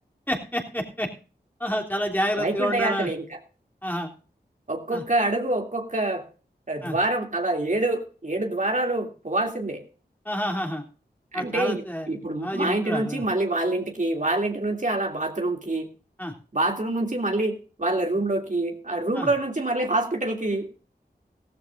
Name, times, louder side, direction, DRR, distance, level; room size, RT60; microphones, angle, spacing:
voice 1, 0.3-1.1 1.6-3.1 3.8-4.1 4.9-5.0 6.8-7.0 10.2-10.8 11.3-12.1 12.4-13.2 16.2-16.3 19.1-19.3, equal, 10° left, 1 dB, 3.3 m, -28 dB
voice 2, 2.3-3.4 4.7-6.2 6.7-9.8 11.3-15.9 16.5-20.7, right 2 dB, 50° right, 2 dB, 2.9 m, -26 dB
16.0 x 14.5 x 2.6 m, 0.37 s
cardioid pair, 40°, 17 cm